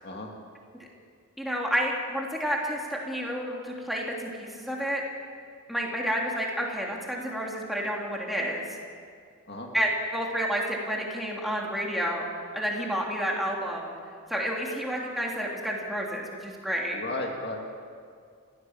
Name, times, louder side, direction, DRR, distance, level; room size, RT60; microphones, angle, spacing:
voice 1, 1.4-5.0 5.7-8.6 9.7-12.3 12.5-13.9 14.3-17.0, equal, ahead, -2 dB, 3.1 m, -30 dB
voice 2, 16.9-17.6, left 2 dB, 50° left, 1 dB, 2.3 m, -34 dB
29.5 x 16.5 x 7.4 m, 2.2 s
head